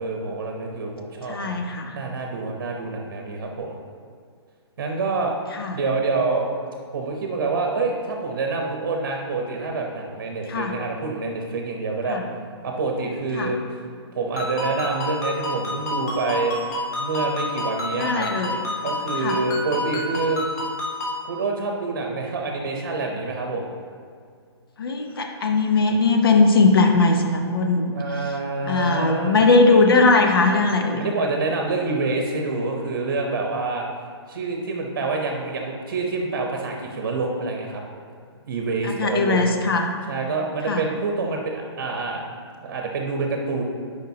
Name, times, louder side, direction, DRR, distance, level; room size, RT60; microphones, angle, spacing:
voice 1, 0.0-1.5 1.9-3.8 4.8-5.3 5.7-6.5 6.9-12.2 12.6-13.6 14.1-16.6 17.0-18.3 18.8-20.4 21.2-23.7 27.9-29.4 31.0-33.9 34.3-37.8 38.5-39.4 40.1-42.2 42.6-43.6, right 3 dB, 45° right, 1 dB, 0.9 m, -27 dB
voice 2, 1.3-1.9 5.5-5.8 10.5-10.7 12.1-12.2 13.4-13.5 17.9-18.6 19.2-19.4 24.8-27.9 28.7-31.0 38.8-39.9 40.7-40.8, left 3 dB, 55° left, 3 dB, 0.7 m, -19 dB
Ringtone, 14.4-21.2, left 1 dB, 35° left, 1.4 m, -29 dB
10.5 x 5.1 x 2.8 m, 2.1 s
hypercardioid pair, 175°, 14 cm